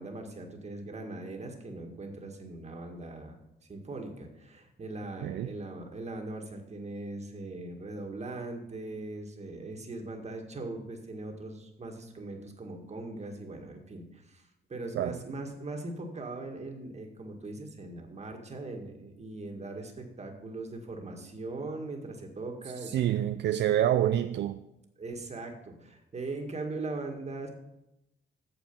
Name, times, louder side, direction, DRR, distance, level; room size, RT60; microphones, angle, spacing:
voice 1, 0.0-3.4 3.7-23.1 25.0-27.5, right 2 dB, 35° right, 3 dB, 1.9 m, -40 dB
voice 2, 5.2-5.5 14.9-15.2 22.9-24.6, right 11 dB, 60° right, 10 dB, 0.4 m, -27 dB
8.9 x 7.0 x 5.3 m, 0.88 s
cardioid pair, 90°, 20 cm